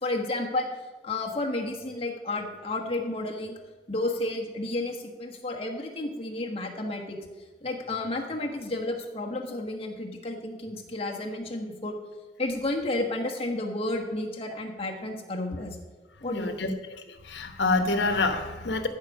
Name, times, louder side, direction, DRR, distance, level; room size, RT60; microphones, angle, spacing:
voice 1, 0.0-0.7 1.0-3.6 3.9-7.2 7.6-12.0 12.4-15.8 16.2-16.7, left 2 dB, 30° left, 0 dB, 1.3 m, -31 dB
voice 2, 16.2-16.7 17.1-18.9, left 3 dB, 70° left, 7 dB, 1.1 m, -27 dB
14.0 x 4.8 x 6.4 m, 1.2 s
head